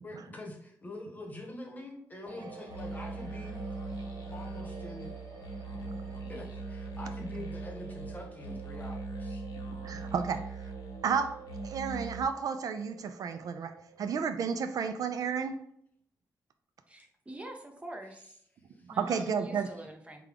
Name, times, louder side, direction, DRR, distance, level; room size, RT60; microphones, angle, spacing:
voice 1, 0.0-3.6 4.3-5.1 6.1-9.4 18.7-18.9, left 2 dB, 25° left, 1 dB, 1.0 m, -45 dB
sound 1, 2.2-14.1, right 4 dB, 90° right, 0.8 m, -51 dB
sound 2, 2.7-12.2, right 3 dB, 75° left, 0.6 m, -40 dB
voice 2, 9.7-10.5 11.0-11.4 11.6-13.7 14.0-15.6 19.0-19.7, right 6 dB, 65° right, 9 dB, 0.3 m, -32 dB
voice 3, 16.9-18.4 18.9-20.2, right 1 dB, 20° right, 2 dB, 0.6 m, -45 dB
4.8 x 2.2 x 3.4 m, 0.69 s
cardioid pair, 110°, 7 cm